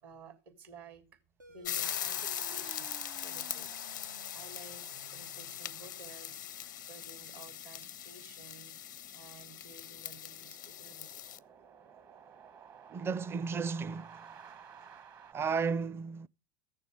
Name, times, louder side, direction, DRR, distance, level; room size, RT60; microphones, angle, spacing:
voice 1, 0.0-2.9 3.2-11.2, right 3 dB, 65° right, 3.1 m, -54 dB
sound 1, 1.4-6.3, right 5 dB, 85° right, 1.0 m, -56 dB
sound 2, 1.6-11.4, left 11 dB, 85° left, 0.6 m, -41 dB
sound 3, 1.8-15.3, right 7 dB, 40° right, 1.4 m, -55 dB
voice 2, 12.9-14.3 15.3-16.3, right 5 dB, 25° right, 0.6 m, -33 dB
14.5 x 7.0 x 7.8 m
hypercardioid pair, 85°, 10 cm